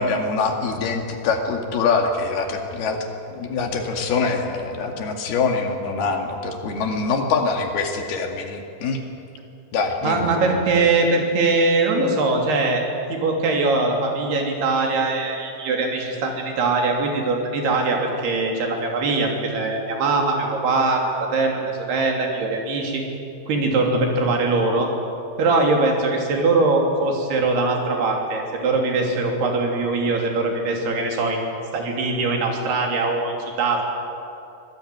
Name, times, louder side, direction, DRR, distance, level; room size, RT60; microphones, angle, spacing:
voice 1, 0.0-3.0 3.3-9.0 9.7-10.6, left 4 dB, 75° left, 3 dB, 4.1 m, -24 dB
voice 2, 10.0-12.8 13.1-21.1 21.3-23.0 23.5-24.9 25.4-31.4 31.7-33.8, right 3 dB, 80° right, 1 dB, 5.1 m, -21 dB
24.5 x 18.5 x 9.3 m, 2.6 s
omnidirectional pair, 4.5 m